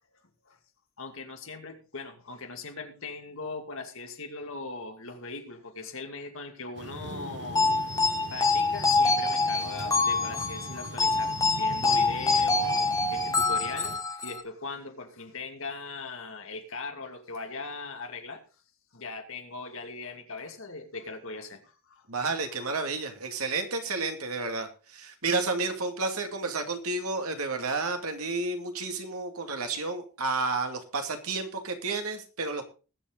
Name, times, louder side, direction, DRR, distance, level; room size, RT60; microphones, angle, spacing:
voice 1, 1.0-18.4 18.9-22.1, left 3 dB, 65° left, 5 dB, 2.4 m, -40 dB
sound 1, 6.8-14.0, right 2 dB, 55° right, 1.2 m, -42 dB
sound 2, 7.6-14.4, left 3 dB, 15° left, 1.2 m, -25 dB
voice 2, 22.1-32.6, right 3 dB, 75° right, 5 dB, 2.4 m, -31 dB
20.5 x 7.6 x 3.9 m, 0.34 s
head